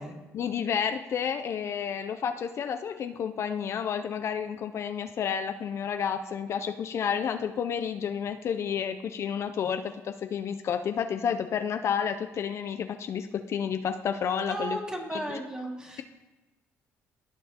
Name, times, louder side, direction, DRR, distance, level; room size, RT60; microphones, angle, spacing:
voice 1, 0.3-14.8 15.1-15.4, left 7 dB, 55° left, 8 dB, 0.4 m, -30 dB
voice 2, 14.5-16.0, right 1 dB, 15° right, 0 dB, 1.9 m, -35 dB
16.0 x 5.4 x 2.9 m, 1.1 s
supercardioid pair, 80°, 6 cm